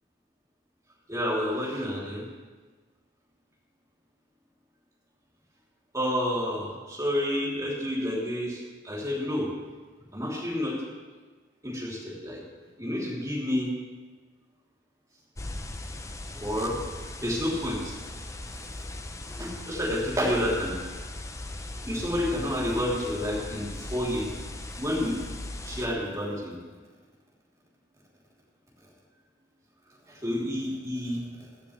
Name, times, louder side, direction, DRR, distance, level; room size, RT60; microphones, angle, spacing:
voice 1, 1.1-2.2 5.9-9.5 10.1-10.7 11.6-12.4 12.8-13.7 16.4-16.8 17.2-17.8 19.3-20.8 21.8-24.3 24.8-25.1 25.6-26.6 30.1-31.2, left 1 dB, 15° right, -6 dB, 3.2 m, -29 dB
sound 1, 15.4-25.9, left 2 dB, 15° left, 0.6 m, -39 dB
16.5 x 12.0 x 3.3 m, 1.3 s
head